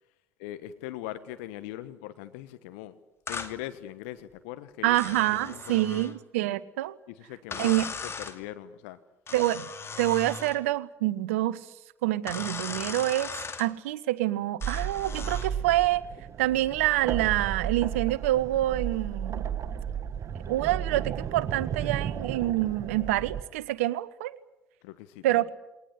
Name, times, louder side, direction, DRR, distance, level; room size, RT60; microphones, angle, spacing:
voice 1, 0.4-2.9 3.3-6.0 7.1-7.7 8.0-9.0 24.8-25.5, left 14 dB, 70° left, 12 dB, 1.2 m, -41 dB
sound 1, 3.3-3.5 4.9-6.2 7.5-8.4 9.3-10.6 12.3-13.7 14.6-15.5, left 5 dB, 35° left, 2.5 m, -38 dB
voice 2, 4.8-7.0 7.6-7.9 9.3-9.7 10.0-11.6 12.0-13.3 13.6-16.0 16.4-19.4 20.5-24.4 25.2-25.5, right 16 dB, 75° right, 18 dB, 0.9 m, -26 dB
sound 2, 14.6-23.4, right 8 dB, 45° right, 1.7 m, -34 dB
22.0 x 19.0 x 10.0 m, 0.97 s
figure-of-eight pair, 55°, 7 cm